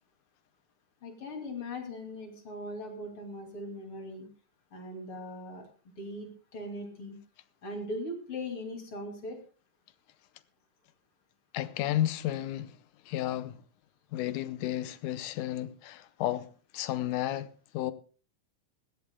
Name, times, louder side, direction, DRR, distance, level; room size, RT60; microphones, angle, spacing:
voice 1, 1.0-4.3 4.7-5.7 6.0-7.2 7.6-9.4, left 1 dB, 40° left, 3.3 m, -39 dB
voice 2, 11.5-12.8 13.1-13.6 14.1-16.5 16.7-17.9, left 13 dB, 75° left, 2.2 m, -32 dB
20.0 x 16.0 x 2.2 m
omnidirectional pair, 3.8 m